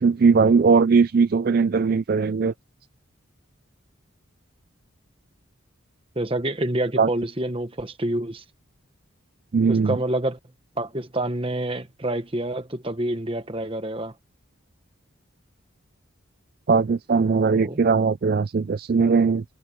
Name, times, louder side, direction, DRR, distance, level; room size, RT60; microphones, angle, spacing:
voice 1, 0.0-2.5 7.0-7.1 9.5-10.0 16.7-19.4, right 5 dB, 45° right, 0.4 m, -19 dB
voice 2, 6.1-8.4 9.7-10.4 10.8-14.1 17.5-17.8, right 1 dB, 25° right, 1.3 m, -27 dB
head